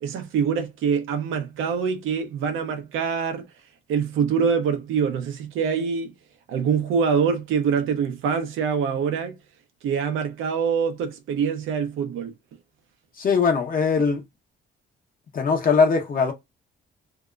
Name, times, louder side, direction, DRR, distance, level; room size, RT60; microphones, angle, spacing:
voice 1, 0.0-3.5 3.9-6.1 6.5-9.4 9.8-12.3, right 6 dB, 85° right, 0.7 m, -24 dB
voice 2, 13.2-14.2 15.3-16.3, left 5 dB, 45° left, 0.9 m, -20 dB
2.7 x 2.1 x 2.4 m
cardioid pair, 90°, 20 cm